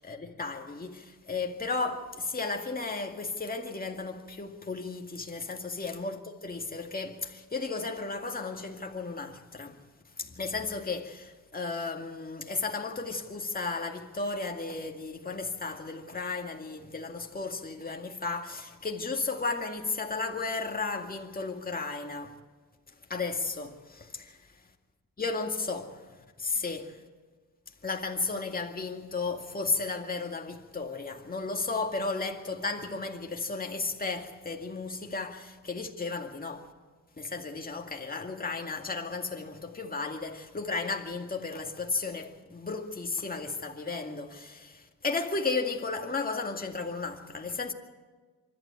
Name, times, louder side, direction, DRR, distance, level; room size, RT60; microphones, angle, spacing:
voice 1, 0.0-9.8 10.2-22.4 22.9-24.6 25.2-27.0 27.8-36.7 37.2-47.7, left 3 dB, 25° left, 2.1 m, -34 dB
25.0 x 12.5 x 8.9 m
cardioid pair, 75°, 33 cm